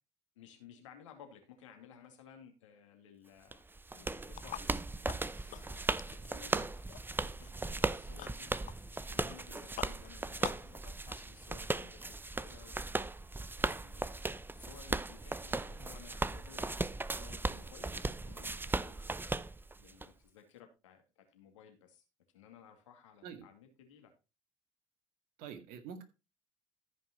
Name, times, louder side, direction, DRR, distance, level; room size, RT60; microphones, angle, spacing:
voice 1, 0.4-3.6 3.9-4.8 5.5-6.7 7.2-8.5 9.1-13.0 13.6-16.7 17.0-18.9 19.8-22.0 22.3-24.1, left 8 dB, 90° left, 2.3 m, -57 dB
sound 1, 3.5-20.1, right 2 dB, 15° right, 0.7 m, -37 dB
sound 2, 4.3-10.7, left 14 dB, 55° left, 0.5 m, -50 dB
voice 2, 25.4-26.0, right 7 dB, 70° right, 2.0 m, -47 dB
14.5 x 5.6 x 4.2 m
hypercardioid pair, 60°, 15 cm